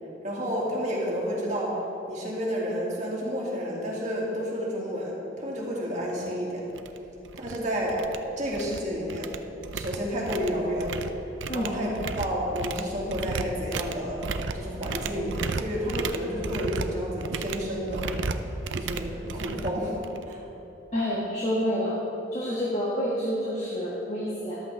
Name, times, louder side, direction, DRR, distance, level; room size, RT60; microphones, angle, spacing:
voice 1, 0.2-1.8 2.1-6.7 7.4-8.0 8.4-9.4 9.7-10.9 11.5-14.3 14.5-18.1 18.7-19.9 20.3-20.4, equal, 40° right, -4 dB, 2.4 m, -30 dB
sound 1, 6.2-6.3 6.7-7.0 7.2-7.6 7.9-8.8 9.1-20.3, right 4 dB, 90° right, 0.6 m, -34 dB
voice 2, 20.9-21.9 22.3-24.6, equal, 35° left, -5 dB, 1.6 m, -28 dB
14.0 x 12.0 x 3.5 m, 3.0 s
head